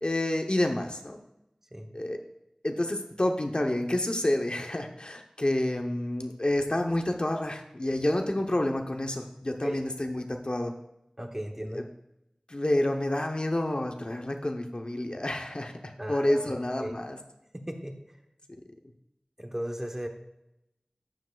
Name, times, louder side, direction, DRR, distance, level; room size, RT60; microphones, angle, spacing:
voice 1, 0.0-1.2 1.9-2.2 2.6-10.7 11.7-11.8 12.5-17.2, left 1 dB, 50° left, 3 dB, 0.9 m, -29 dB
voice 2, 11.2-11.8 16.0-16.9 17.5-17.9 19.4-20.1, equal, 20° right, 4 dB, 1.0 m, -36 dB
12.0 x 7.3 x 2.4 m, 0.87 s
wide cardioid pair, 45°, 2 cm